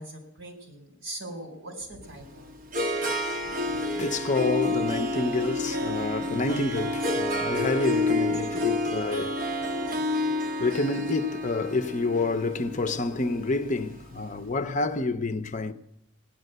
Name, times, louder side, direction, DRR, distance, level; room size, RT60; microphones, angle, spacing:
voice 1, 0.0-2.5, right 1 dB, 65° right, 4.3 m, -41 dB
Harp, 2.0-14.2, left 2 dB, 45° right, 1.3 m, -29 dB
voice 2, 3.4-15.7, left 3 dB, 40° left, 0.7 m, -29 dB
17.5 x 10.0 x 7.9 m
head